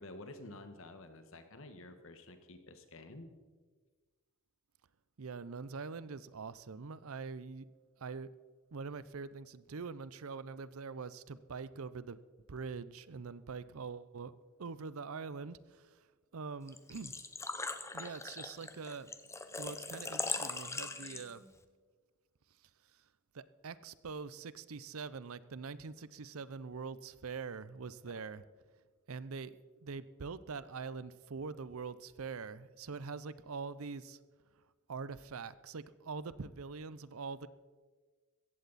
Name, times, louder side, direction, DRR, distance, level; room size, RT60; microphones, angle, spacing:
voice 1, 0.0-3.3, left 2 dB, 65° left, 8 dB, 1.5 m, -50 dB
voice 2, 5.2-7.7 8.0-8.3 8.7-12.2 12.5-14.3 14.6-16.0 16.3-17.1 17.9-19.1 19.6-21.4 23.3-28.4 29.1-29.6 29.8-34.2 34.9-37.5, right 5 dB, 75° right, 17 dB, 0.6 m, -44 dB
Engine / Trickle dribble / Fill (with liquid), 16.7-21.5, left 3 dB, 15° left, 0.7 m, -40 dB
16.5 x 15.0 x 4.1 m, 1.4 s
head